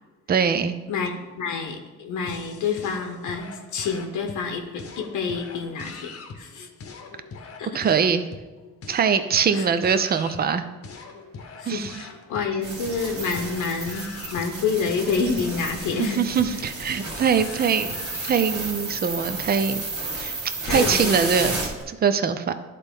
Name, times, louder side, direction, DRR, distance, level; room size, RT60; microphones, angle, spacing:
voice 1, 0.3-0.7 7.7-8.2 8.9-10.7 11.7-11.9 16.0-17.9 18.2-19.8 20.2-20.3 20.7-22.5, right 6 dB, 30° right, 11 dB, 0.5 m, -22 dB
voice 2, 0.9-6.7 7.6-7.7 9.5-9.7 11.6-16.2 20.7-21.3, left 5 dB, 80° left, 3 dB, 0.9 m, -28 dB
sound 1, 2.3-18.5, left 4 dB, 50° left, 0.9 m, -42 dB
sound 2, 12.6-21.8, right 3 dB, 70° right, 2.2 m, -32 dB
11.0 x 4.1 x 3.6 m, 1.2 s
cardioid pair, 90°, 30 cm